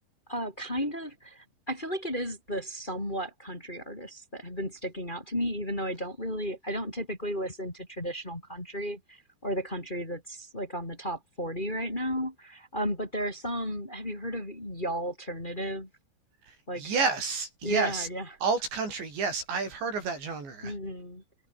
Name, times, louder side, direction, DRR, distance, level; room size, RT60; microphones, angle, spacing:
voice 1, 0.3-15.9 16.7-16.9 17.6-18.2 20.6-21.2, equal, 10° left, 3.5 m, -34 dB
voice 2, 16.4-18.1 18.4-20.8, right 4 dB, 85° right, 9.9 m, -30 dB
omnidirectional pair, 5.0 m